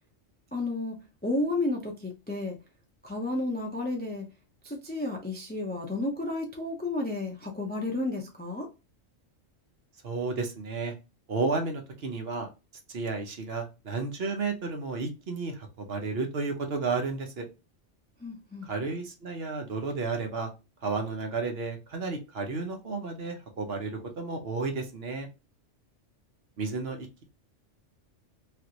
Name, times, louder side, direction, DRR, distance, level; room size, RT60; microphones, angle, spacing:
voice 1, 0.5-1.0 1.2-2.6 3.0-4.2 4.6-8.7 18.2-18.7, left 2 dB, 15° left, 0.3 m, -32 dB
voice 2, 10.0-10.9 11.3-12.5 12.9-17.5 18.6-20.5 20.8-25.3 26.6-27.2, right 4 dB, 60° right, 1.0 m, -32 dB
3.2 x 2.5 x 2.8 m
omnidirectional pair, 1.3 m